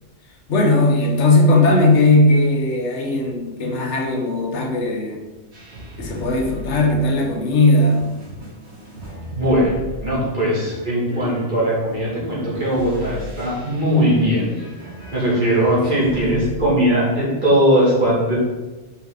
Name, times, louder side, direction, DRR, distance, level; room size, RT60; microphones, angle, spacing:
voice 1, 0.5-5.2 6.0-8.0 15.9-16.5, left 2 dB, 65° left, 3 dB, 1.2 m, -18 dB
sound 1, 5.5-16.7, left 1 dB, 60° right, 2.0 m, -37 dB
voice 2, 9.3-9.7 10.0-14.5 15.1-18.4, equal, 40° right, -7 dB, 2.4 m, -19 dB
5.6 x 5.6 x 3.9 m, 1.2 s
omnidirectional pair, 1.3 m